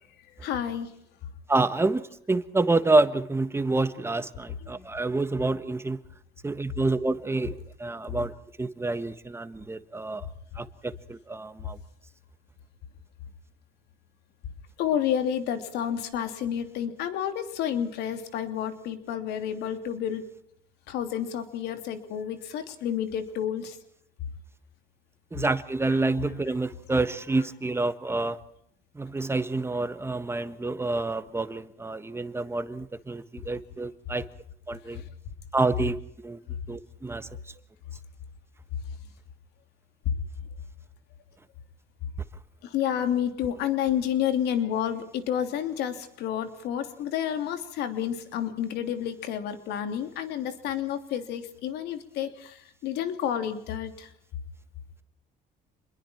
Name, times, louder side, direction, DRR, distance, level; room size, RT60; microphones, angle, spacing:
voice 1, 0.4-0.9 4.6-4.7 14.8-20.2 20.9-23.8 25.9-26.0 42.6-54.1, left 9 dB, 85° left, 3.0 m, -30 dB
voice 2, 1.5-2.0 2.3-6.0 6.4-8.3 8.6-10.3 10.6-11.8 25.3-28.4 29.0-34.2 34.7-35.0 35.5-36.0 36.2-36.4 36.7-37.3, right 2 dB, 15° right, 1.4 m, -28 dB
28.0 x 22.0 x 4.5 m
cardioid pair, 110°, 17 cm